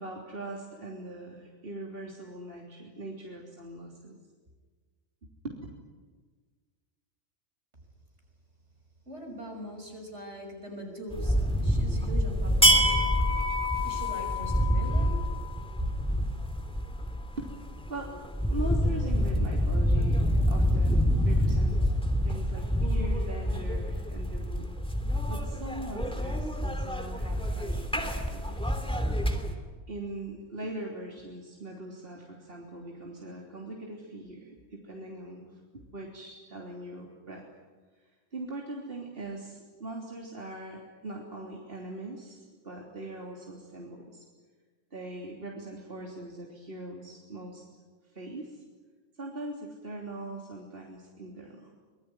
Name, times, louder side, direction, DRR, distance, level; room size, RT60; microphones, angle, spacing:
voice 1, 0.0-4.2 5.2-5.6 17.4-17.5 17.9-18.1 18.5-21.9 22.2-24.7 25.3-28.8 29.9-37.4 38.3-44.3 44.9-47.7 48.1-48.6 49.2-51.7, right 1 dB, 50° right, -1 dB, 3.5 m, -41 dB
voice 2, 9.1-13.1 13.8-15.2 15.8-15.9, right 1 dB, 65° right, 3 dB, 6.2 m, -41 dB
sound 1, 11.1-29.5, equal, 5° left, 2.8 m, -27 dB
25.0 x 22.0 x 9.6 m, 1.4 s
omnidirectional pair, 1.3 m